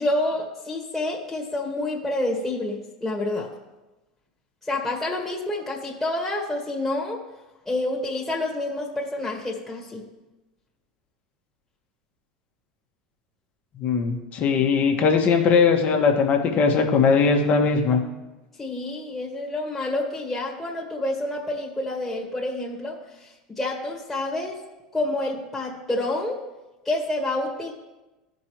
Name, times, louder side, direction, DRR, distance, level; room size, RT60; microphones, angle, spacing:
voice 1, 0.0-3.5 4.6-7.2 7.6-10.0 18.6-24.6 24.9-26.4 26.8-27.7, left 2 dB, 10° left, -3 dB, 1.7 m, -28 dB
voice 2, 13.7-18.0, left 5 dB, 45° left, 3 dB, 1.5 m, -20 dB
14.5 x 5.3 x 3.2 m, 1.0 s
hypercardioid pair, 85°, 4 cm